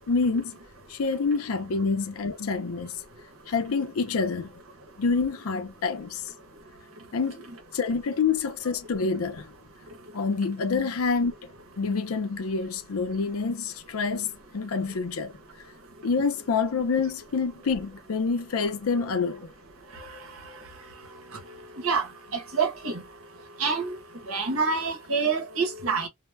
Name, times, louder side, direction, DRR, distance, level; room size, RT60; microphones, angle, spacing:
voice 1, 0.1-0.6 0.9-3.0 3.5-4.5 5.0-6.2 7.1-7.4 7.7-9.5 10.1-11.3 11.8-15.4 16.0-19.5, left 4 dB, 80° left, 0.5 m, -27 dB
voice 2, 22.3-23.0 23.6-23.9 24.3-26.1, right 5 dB, 75° right, 0.8 m, -26 dB
2.2 x 2.1 x 3.1 m
head